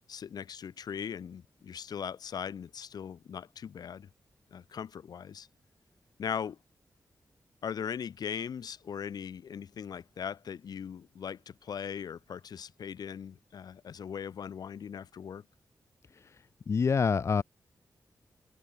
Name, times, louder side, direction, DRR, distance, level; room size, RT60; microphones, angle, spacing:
voice 1, 0.1-4.1 4.5-5.5 6.2-6.6 7.6-15.4, left 7 dB, 75° left, 2.3 m, -39 dB
voice 2, 16.7-17.4, left 5 dB, 45° left, 1.0 m, -27 dB
wide cardioid pair, 170°, 7 cm